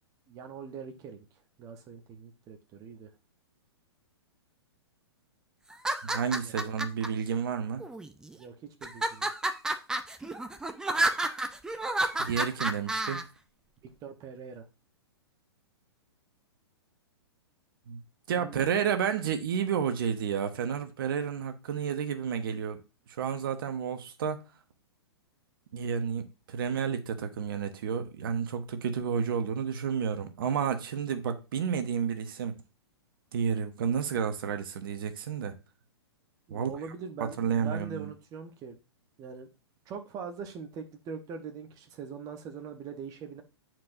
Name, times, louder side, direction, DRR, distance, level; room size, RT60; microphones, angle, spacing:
voice 1, 0.3-1.2 1.6-3.1 6.4-6.7 8.3-9.3 13.8-14.6 18.3-18.7 36.5-38.8 39.2-39.5 39.9-43.4, right 6 dB, 25° right, 0.9 m, -42 dB
sound 1, 5.7-7.1 7.8-8.3 8.8-13.2, right 2 dB, 5° right, 0.5 m, -30 dB
voice 2, 6.0-7.8 12.2-13.2 17.9-18.0 18.3-22.8 23.2-24.4 25.7-32.5 33.3-35.6 36.5-36.7 37.4-38.1, right 7 dB, 55° right, 1.0 m, -31 dB
9.3 x 4.5 x 2.6 m
figure-of-eight pair, 115°, 14 cm